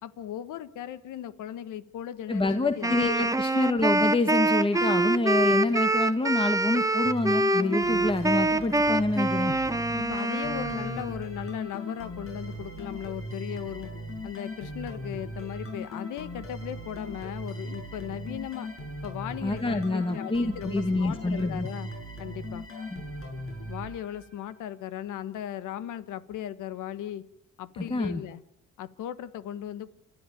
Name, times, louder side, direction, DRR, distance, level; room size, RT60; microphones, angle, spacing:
voice 1, 0.0-3.3 4.7-5.0 10.1-13.9 14.2-18.7 19.0-21.9 22.2-22.7 23.7-27.3 27.6-28.4 28.8-29.9, left 11 dB, 85° left, 14 dB, 1.3 m, -37 dB
voice 2, 2.3-9.6 19.4-21.7 22.8-23.0 27.8-28.2, left 2 dB, 15° left, 8 dB, 1.4 m, -27 dB
Wind instrument woodwind instrument, 2.8-11.2, right 2 dB, 10° right, 1.0 m, -25 dB
sound 1, 7.0-24.6, equal, 45° left, 7.3 m, -39 dB
28.0 x 12.0 x 9.2 m, 0.79 s
cardioid pair, 90°, 30 cm